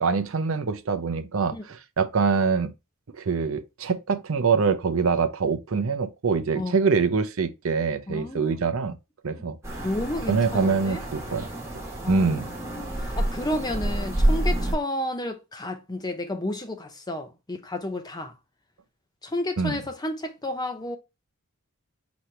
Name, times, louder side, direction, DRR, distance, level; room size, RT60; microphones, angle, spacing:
voice 1, 0.0-2.7 3.1-9.0 9.2-9.6 10.3-11.5 12.1-12.5 19.6-19.8, right 5 dB, 65° right, 0.6 m, -24 dB
voice 2, 8.1-8.7 9.8-11.0 12.0-18.3 19.2-21.0, left 1 dB, 20° left, 0.5 m, -31 dB
sound 1, 9.6-14.7, right 1 dB, 10° right, 1.3 m, -28 dB
5.2 x 3.0 x 3.2 m
head